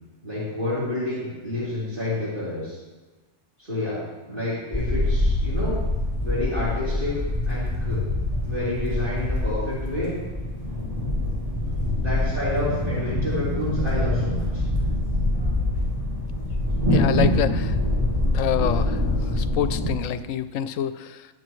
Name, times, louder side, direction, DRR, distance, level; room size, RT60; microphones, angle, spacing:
voice 1, 0.2-2.8 3.6-5.8 6.2-7.1 7.5-8.0 8.4-10.1 12.0-14.6, left 2 dB, 40° right, -10 dB, 3.7 m, -29 dB
sound 1, 4.7-19.9, left 1 dB, 25° right, 3.3 m, -25 dB
voice 2, 16.9-17.8 18.2-19.0 19.3-21.3, left 10 dB, 90° left, 12 dB, 1.0 m, -26 dB
20.0 x 7.9 x 3.2 m, 1.2 s
omnidirectional pair, 1.3 m